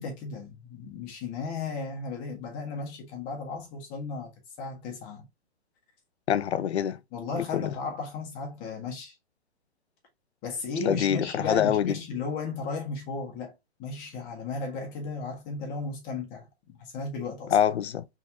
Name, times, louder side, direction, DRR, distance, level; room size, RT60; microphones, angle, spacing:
voice 1, 0.0-4.3 4.6-5.3 7.1-9.1 10.4-13.5 13.8-17.6, left 4 dB, 25° left, 1.6 m, -35 dB
voice 2, 6.3-7.0 7.3-7.7 10.9-11.9 17.5-18.1, left 9 dB, 80° left, 0.6 m, -25 dB
4.1 x 3.7 x 2.9 m
hypercardioid pair, 145°, 32 cm